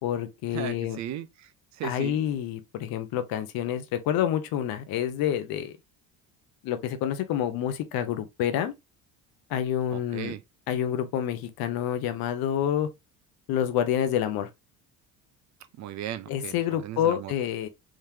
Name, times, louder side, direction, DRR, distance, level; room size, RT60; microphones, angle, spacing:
voice 1, 0.0-1.0 1.8-5.7 6.6-8.7 9.5-10.3 10.7-12.9 13.5-14.5 16.3-17.7, left 10 dB, 70° left, 0.9 m, -28 dB
voice 2, 0.5-2.2 9.9-10.4 15.8-17.3, right 11 dB, 50° right, 0.5 m, -37 dB
3.7 x 3.2 x 2.8 m
cardioid pair, 120°, 37 cm